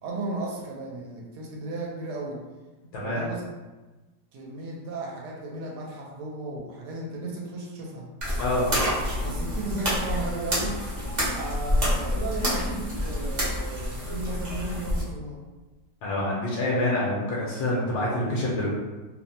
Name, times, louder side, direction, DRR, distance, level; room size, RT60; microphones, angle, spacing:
voice 1, 0.0-2.4 2.9-3.4 4.3-8.1 9.2-10.8 11.3-15.4, right 2 dB, 85° right, -1 dB, 1.2 m, -35 dB
voice 2, 2.9-3.3 8.4-8.8 16.0-18.7, left 1 dB, 75° left, -5 dB, 1.1 m, -26 dB
sound 1, 8.2-15.0, equal, 45° right, 0.5 m, -28 dB
3.0 x 2.1 x 2.6 m, 1.2 s
omnidirectional pair, 1.8 m